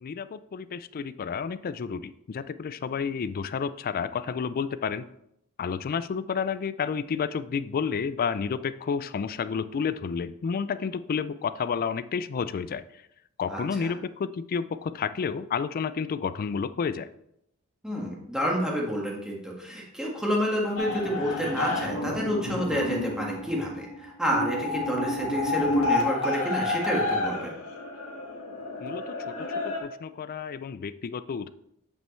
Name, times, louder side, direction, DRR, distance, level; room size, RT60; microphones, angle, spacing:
voice 1, 0.0-5.0 5.6-13.0 13.4-17.1 28.8-31.5, left 6 dB, 40° left, 14 dB, 0.3 m, -31 dB
voice 2, 13.5-13.9 17.8-27.5, equal, 5° right, -3 dB, 1.6 m, -29 dB
sound 1, 20.8-29.8, left 2 dB, 70° left, 1.5 m, -30 dB
8.9 x 5.5 x 3.2 m, 0.76 s
head